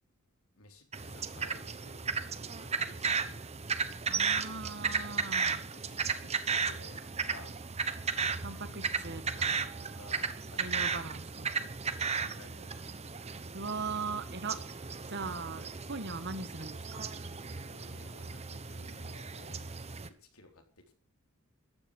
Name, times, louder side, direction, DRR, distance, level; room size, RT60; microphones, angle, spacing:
voice 1, 0.5-2.2 2.5-3.5 4.8-5.4 5.7-7.5 8.6-9.5 9.8-11.0 11.9-12.8 17.6-19.7 20.2-20.9, left 2 dB, 80° left, 4 dB, 3.9 m, -56 dB
sound 1, 0.9-20.1, right 5 dB, 30° right, 1.0 m, -35 dB
voice 2, 4.1-5.6 8.4-9.2 10.6-11.7 13.5-14.6 15.1-17.1, right 4 dB, 55° right, 11 dB, 1.5 m, -39 dB
14.0 x 10.5 x 6.3 m, 0.40 s
head